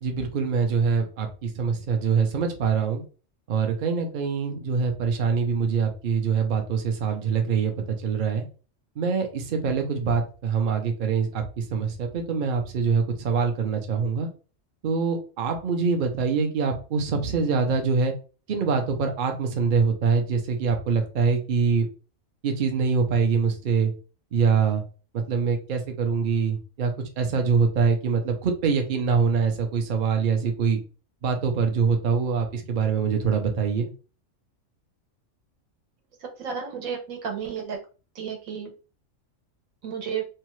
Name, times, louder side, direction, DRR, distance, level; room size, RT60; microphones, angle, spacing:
voice 1, 0.0-3.0 3.5-8.4 9.0-14.3 14.8-18.1 18.5-21.9 22.4-23.9 24.3-24.8 25.1-30.8 31.2-33.9, right 5 dB, 55° right, 4 dB, 0.6 m, -24 dB
voice 2, 36.4-37.8 38.1-38.7 39.8-40.2, right 7 dB, 80° right, 2 dB, 1.2 m, -32 dB
2.7 x 2.3 x 3.0 m, 0.35 s
omnidirectional pair, 1.4 m